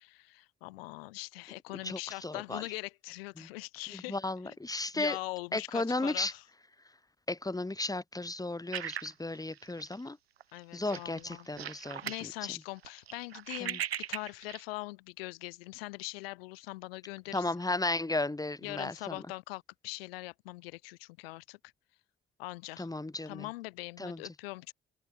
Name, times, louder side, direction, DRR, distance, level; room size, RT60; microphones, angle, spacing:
voice 1, 0.0-4.2 4.4-4.6 4.9-6.5 10.5-11.5 12.0-17.6 18.6-21.7 22.4-22.9 23.3-24.7, left 22 dB, 75° left, 1.9 m, -42 dB
voice 2, 1.8-2.6 3.4-3.5 4.1-5.2 5.5-6.3 7.3-10.2 10.7-12.0 13.6-13.8 17.3-19.2 22.8-23.4 24.0-24.2, left 2 dB, 10° left, 2.3 m, -34 dB
sound 1, 8.7-10.1 10.4-10.6 10.9-12.3 12.6-14.6, right 9 dB, 80° right, 4.4 m, -39 dB
figure-of-eight pair, 40°, 30 cm